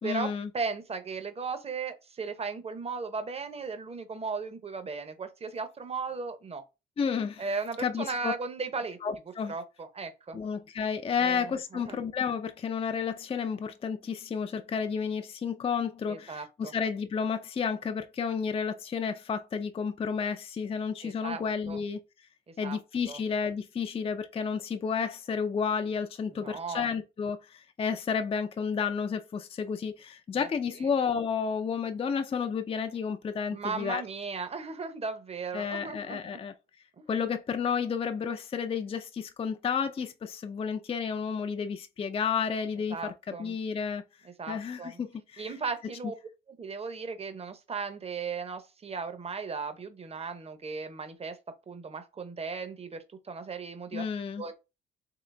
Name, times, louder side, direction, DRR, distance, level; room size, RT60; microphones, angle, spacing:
voice 1, 0.0-0.5 7.0-7.4 7.8-8.3 9.0-9.5 10.3-22.0 22.6-34.0 35.5-36.5 37.1-44.0 44.5-45.5 53.9-54.4, left 6 dB, 30° left, 0.4 m, -31 dB
voice 2, 0.5-6.6 7.4-9.0 9.5-10.4 11.2-12.0 16.1-16.7 21.0-21.8 22.5-22.8 23.1-23.2 26.3-26.9 30.4-30.5 30.8-30.9 33.5-36.5 37.0-37.1 42.9-43.6 44.2-45.0 45.4-46.1 46.5-51.4 51.7-54.1 54.4-54.5, right 4 dB, 30° right, 0.8 m, -36 dB
3.8 x 3.0 x 3.3 m
cardioid pair, 90°, 20 cm